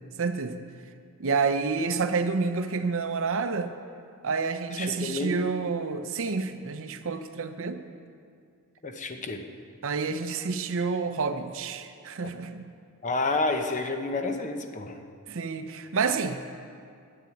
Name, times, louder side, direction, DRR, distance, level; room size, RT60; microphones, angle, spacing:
voice 1, 0.2-0.6 1.2-3.7 4.2-7.8 9.8-12.6 15.3-16.4, right 4 dB, 60° right, 9 dB, 0.7 m, -29 dB
voice 2, 4.8-5.4 8.8-9.4 13.0-15.0, left 3 dB, 35° left, 5 dB, 0.9 m, -29 dB
10.5 x 9.0 x 9.3 m, 2.3 s
head